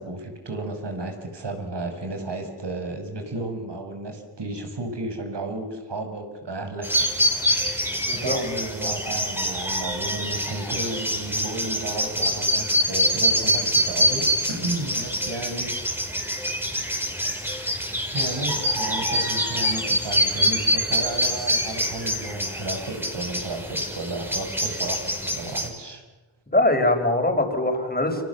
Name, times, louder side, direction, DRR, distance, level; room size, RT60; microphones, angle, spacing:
voice 1, 0.0-6.9 7.1-7.9 8.2-16.1 18.1-26.0, right 2 dB, 60° right, 5 dB, 6.1 m, -33 dB
sound 1, 6.8-25.7, equal, 5° right, 5.3 m, -25 dB
voice 2, 8.1-8.4 26.5-28.2, left 1 dB, 20° left, 4 dB, 5.8 m, -22 dB
30.0 x 27.0 x 7.2 m, 1.1 s
wide cardioid pair, 95°, 48 cm